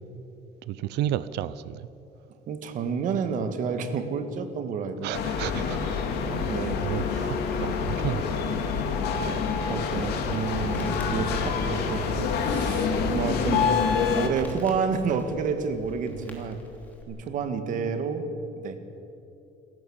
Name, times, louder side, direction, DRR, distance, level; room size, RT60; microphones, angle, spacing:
voice 1, 0.7-1.9 5.0-8.4 8.7-8.9 11.1-11.2 16.3-16.4, right 12 dB, 80° right, 16 dB, 0.7 m, -33 dB
voice 2, 2.5-5.1 6.5-6.9 9.7-13.8 14.2-16.6 17.1-18.3 18.5-18.8, right 5 dB, 50° right, 8 dB, 1.8 m, -29 dB
sound 1, 5.1-14.3, left 6 dB, 75° left, 2.4 m, -27 dB
Crackle, 10.1-17.0, left 1 dB, 10° left, 3.1 m, -47 dB
27.5 x 15.0 x 7.4 m, 2.8 s
cardioid pair, 170°, 17 cm